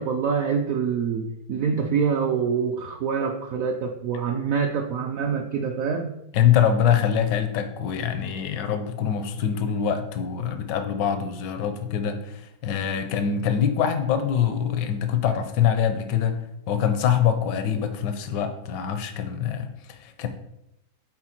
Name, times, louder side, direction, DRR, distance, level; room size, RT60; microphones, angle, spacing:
voice 1, 0.0-6.1, right 6 dB, 65° right, 2 dB, 0.9 m, -25 dB
voice 2, 6.3-20.3, left 8 dB, 80° left, 8 dB, 1.4 m, -24 dB
8.6 x 4.4 x 4.4 m, 0.83 s
omnidirectional pair, 1.9 m